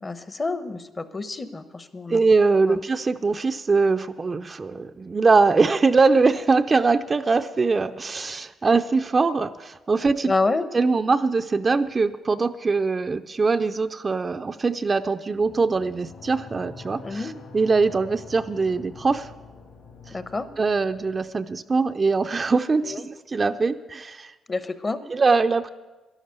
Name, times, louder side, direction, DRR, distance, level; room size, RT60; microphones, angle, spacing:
voice 1, 0.0-2.2 2.7-2.8 10.2-10.6 17.0-17.3 20.1-20.5 22.8-23.0 24.5-25.0, left 3 dB, 30° left, 12 dB, 0.9 m, -28 dB
voice 2, 2.1-10.3 10.7-19.3 20.1-20.2 20.6-24.3 25.1-25.7, right 4 dB, 30° right, 8 dB, 0.5 m, -22 dB
sound 1, 15.3-21.3, left 4 dB, 70° left, 4.1 m, -45 dB
12.0 x 11.0 x 6.7 m, 1.2 s
cardioid pair, 90°, 0 cm